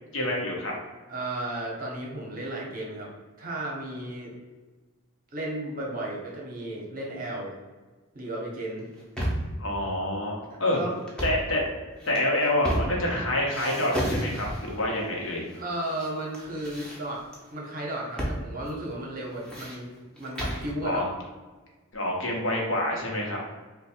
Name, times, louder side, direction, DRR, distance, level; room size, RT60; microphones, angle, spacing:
voice 1, 0.1-0.7 9.6-10.8 11.2-11.6 12.1-15.5 20.8-21.0 21.9-23.4, left 1 dB, 65° left, -2 dB, 0.9 m, -27 dB
voice 2, 1.1-3.1 3.4-4.3 5.3-7.5 8.1-8.9 10.5-11.0 15.6-17.2 17.5-21.1, right 1 dB, 40° right, -2 dB, 0.8 m, -34 dB
sound 1, 8.8-9.6 11.0-11.5 12.0-13.2 13.5-14.8 15.5-16.1 16.3-17.4 18.2-18.4 18.7-18.8 19.2-20.7, equal, 5° left, 0.7 m, -32 dB
3.2 x 2.2 x 4.2 m, 1.3 s
head